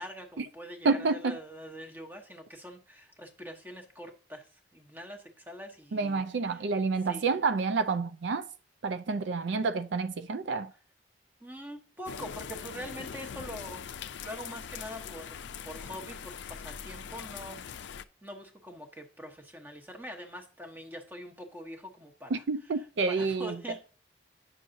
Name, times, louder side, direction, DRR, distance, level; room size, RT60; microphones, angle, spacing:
voice 1, 0.0-6.7 7.0-7.3 11.4-15.4 15.6-17.6 18.2-23.8, equal, 10° right, 1.0 m, -44 dB
voice 2, 0.8-1.4 5.9-8.4 8.8-10.7 22.3-23.6, right 4 dB, 75° right, 0.5 m, -29 dB
sound 1, 12.0-18.0, left 7 dB, 75° left, 0.4 m, -42 dB
8.8 x 6.2 x 2.7 m
head